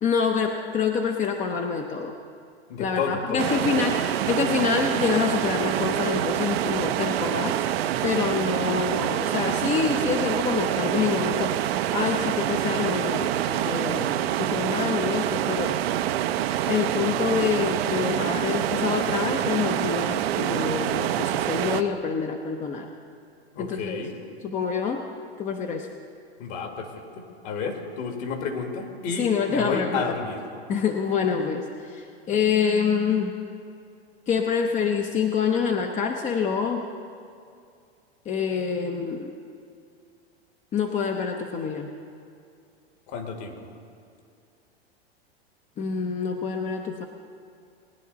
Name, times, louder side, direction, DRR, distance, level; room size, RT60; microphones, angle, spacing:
voice 1, 0.0-2.1 2.8-7.7 8.0-11.6 11.9-15.8 16.7-22.9 23.6-24.0 24.4-25.0 25.4-25.9 29.2-30.0 30.7-33.3 34.3-36.9 38.3-39.3 40.7-41.9 45.8-47.1, left 6 dB, 25° left, 4 dB, 0.7 m, -26 dB
voice 2, 2.7-3.9 23.5-24.2 26.4-30.4 43.1-43.7, left 5 dB, 50° left, 4 dB, 1.9 m, -31 dB
sound 1, 3.4-21.8, right 11 dB, 70° right, 0.7 m, -26 dB
19.5 x 10.0 x 4.0 m, 2.3 s
hypercardioid pair, 110°, 32 cm